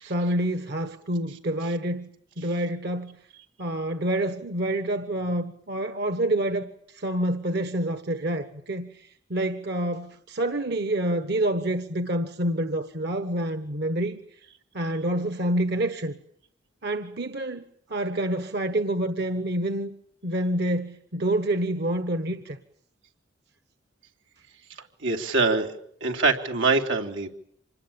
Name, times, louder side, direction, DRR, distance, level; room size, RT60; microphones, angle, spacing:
voice 1, 0.0-2.1 2.4-3.2 3.6-14.2 14.7-16.1 16.8-17.6 17.9-19.9 20.2-22.6, right 1 dB, 60° right, 1.4 m, -27 dB
voice 2, 25.0-27.3, right 3 dB, 90° right, 3.2 m, -24 dB
26.5 x 20.0 x 8.8 m
head